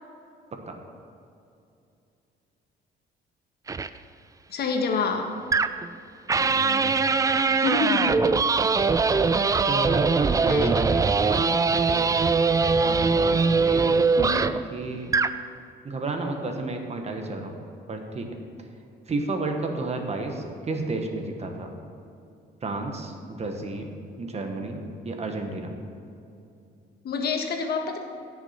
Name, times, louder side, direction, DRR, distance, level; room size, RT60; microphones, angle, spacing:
sound 1, 3.7-3.9 5.5-5.9 6.3-14.7 15.1-15.4, right 4 dB, 20° right, 0.3 m, -22 dB
voice 1, 4.5-5.3 7.6-8.1 10.5-10.9 14.2-14.5 27.0-28.0, left 4 dB, 60° left, 4 dB, 1.3 m, -27 dB
voice 2, 6.3-7.0 9.7-12.1 12.8-13.9 14.7-15.1 15.8-17.5 17.9-18.3 19.1-21.7 22.6-25.7, right 2 dB, 35° right, 4 dB, 1.4 m, -32 dB
16.0 x 6.3 x 4.3 m, 2.6 s
cardioid pair, 95°, 19 cm